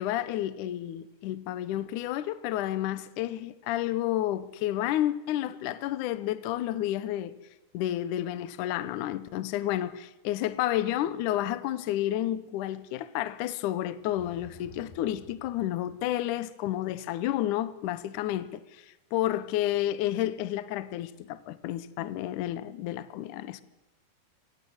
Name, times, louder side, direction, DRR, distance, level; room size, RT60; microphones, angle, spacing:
voice 1, 0.0-7.3 7.7-18.8 19.1-23.6, left 13 dB, 80° left, 1.8 m, -30 dB
sound 1, 14.0-16.3, left 1 dB, 60° left, 8.1 m, -52 dB
24.5 x 16.5 x 8.0 m
omnidirectional pair, 4.9 m